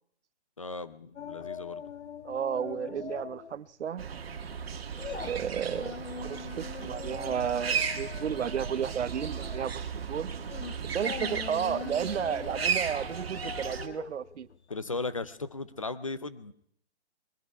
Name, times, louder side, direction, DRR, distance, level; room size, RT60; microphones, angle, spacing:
voice 1, 0.6-1.8 14.7-16.5, left 3 dB, 30° left, 14 dB, 0.5 m, -36 dB
sound 1, 1.2-3.6 3.9-4.1 4.5-15.5 15.8-15.9, left 6 dB, 80° left, 1.4 m, -42 dB
voice 2, 2.2-4.0 5.2-10.3 10.8-14.5, right 8 dB, 90° right, 18 dB, 0.7 m, -33 dB
sound 2, 4.0-13.9, right 6 dB, 60° right, 1.5 m, -35 dB
20.5 x 12.5 x 4.7 m, 0.69 s
hypercardioid pair, 175°, 34 cm